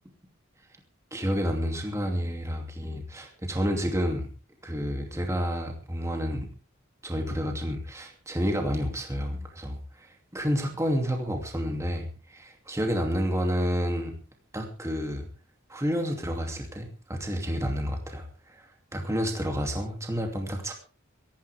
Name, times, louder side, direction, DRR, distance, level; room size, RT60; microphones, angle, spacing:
voice 1, 1.1-4.3 4.6-6.5 7.0-14.1 14.5-15.3 15.7-20.7, equal, 15° right, 2 dB, 2.7 m, -30 dB
24.0 x 11.5 x 3.5 m, 0.35 s
head